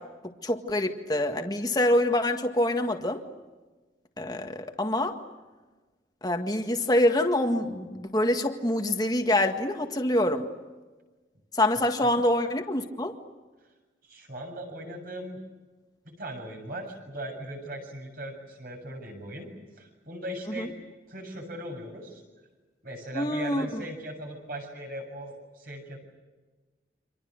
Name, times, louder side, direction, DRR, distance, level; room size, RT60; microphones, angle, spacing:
voice 1, 0.4-3.2 4.2-5.1 6.2-10.5 11.5-13.2 20.6-20.7 23.2-23.7, left 1 dB, 20° left, 5 dB, 1.8 m, -25 dB
voice 2, 14.0-15.4 16.0-19.5 19.8-20.7 21.1-22.2 22.8-26.0, right 1 dB, 50° right, 3 dB, 7.5 m, -39 dB
30.0 x 26.5 x 6.6 m, 1.3 s
head